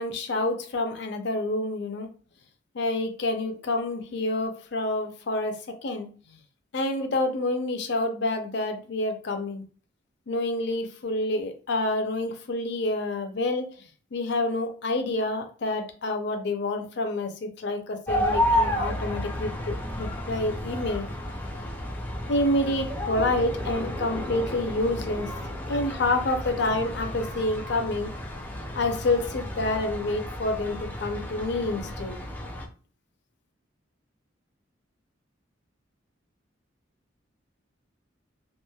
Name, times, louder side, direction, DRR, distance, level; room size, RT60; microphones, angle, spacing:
voice 1, 0.0-2.1 2.7-6.1 6.7-9.6 10.3-13.7 14.1-21.1 22.3-25.3 25.7-28.1 28.8-32.2, left 2 dB, 60° left, 5 dB, 0.5 m, -28 dB
sound 1, 18.1-32.7, equal, 10° left, 0.4 m, -32 dB
3.0 x 2.5 x 2.2 m, 0.39 s
head